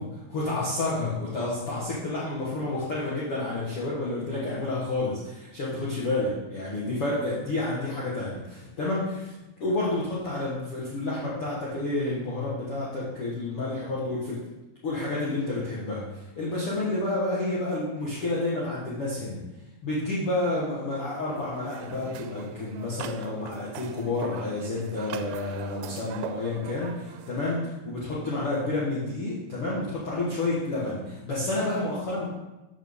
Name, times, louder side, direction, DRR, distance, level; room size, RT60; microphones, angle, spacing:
voice 1, 0.0-9.4 9.6-14.4 14.8-19.4 19.8-32.3, left 2 dB, 50° left, -7 dB, 1.9 m, -30 dB
sound 1, 21.3-27.4, right 11 dB, 80° right, 2.3 m, -41 dB
13.0 x 6.6 x 3.6 m, 1.0 s
omnidirectional pair, 4.3 m